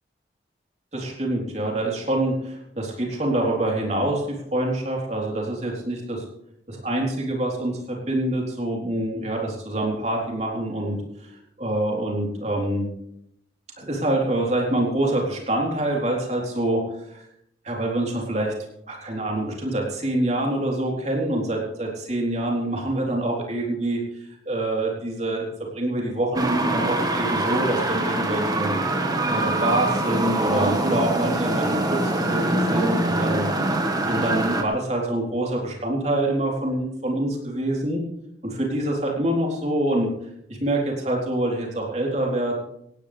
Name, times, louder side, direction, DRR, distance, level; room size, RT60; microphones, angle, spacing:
voice 1, 0.9-6.2 6.7-12.9 13.8-16.8 17.1-17.2 17.6-18.5 18.9-25.5 25.7-28.8 29.3-33.5 33.8-38.0 38.4-40.1 40.5-42.5, right 1 dB, 40° right, -1 dB, 3.9 m, -26 dB
sound 1, 26.3-34.6, right 2 dB, 20° right, 1.5 m, -24 dB
18.0 x 17.0 x 3.5 m, 0.77 s
head